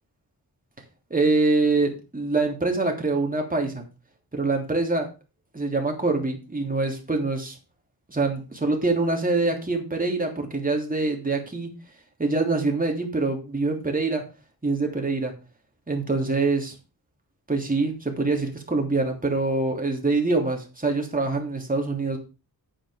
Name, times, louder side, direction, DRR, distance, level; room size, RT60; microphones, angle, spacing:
voice 1, 1.1-3.9 4.3-5.1 5.5-7.5 8.1-11.7 12.2-14.3 14.6-15.3 15.9-16.7 17.5-22.2, right 3 dB, 20° right, 2 dB, 3.2 m, -25 dB
9.1 x 9.1 x 5.1 m, 0.31 s
wide cardioid pair, 115°, 38 cm